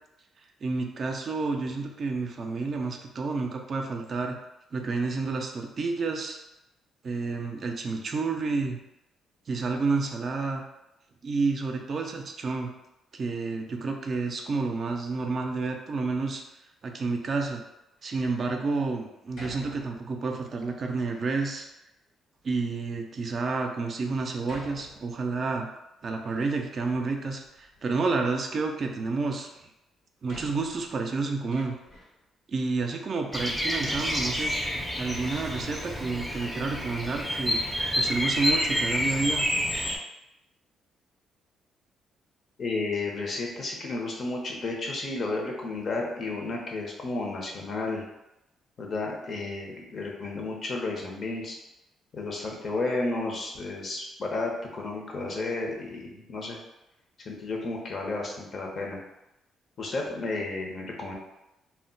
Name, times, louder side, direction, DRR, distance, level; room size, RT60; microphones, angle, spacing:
voice 1, 0.6-4.4 4.7-6.4 7.0-8.8 9.5-10.6 11.2-12.7 13.1-16.4 16.8-17.6 18.0-21.7 22.4-25.7 26.0-29.5 30.2-31.8 32.5-34.5 35.0-37.6 37.9-39.5, right 3 dB, 50° right, 3 dB, 0.4 m, -30 dB
Door, 18.0-18.5 19.3-20.3 21.0-21.6 22.4-22.5 23.2-23.3 24.4-25.6 25.9-27.0 27.3-28.1 29.5-29.6 30.3-32.2 32.9-33.0 33.8-34.9 35.2-35.3 35.4-35.6, left 1 dB, 90° left, 1.0 m, -49 dB
Bird vocalization bird call bird song, 33.3-40.0, equal, 10° left, 0.5 m, -29 dB
voice 2, 42.6-48.0 48.8-51.6 52.1-56.6 57.2-59.0 59.8-61.1, left 3 dB, 50° left, 0 dB, 0.7 m, -32 dB
2.1 x 2.1 x 3.7 m, 0.90 s
cardioid pair, 90°, 0 cm